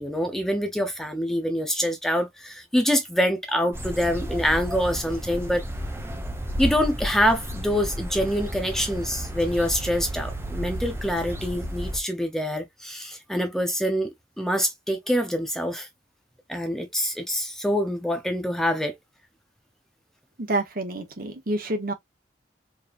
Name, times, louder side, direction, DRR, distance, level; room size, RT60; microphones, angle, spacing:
voice 1, 0.0-5.6 6.6-14.1 14.4-15.9 16.5-19.0, equal, ahead, 0.6 m, -25 dB
sound 1, 3.7-12.0, equal, 15° right, 1.0 m, -32 dB
voice 2, 20.4-21.9, right 2 dB, 50° right, 1.2 m, -28 dB
4.8 x 3.2 x 2.4 m
head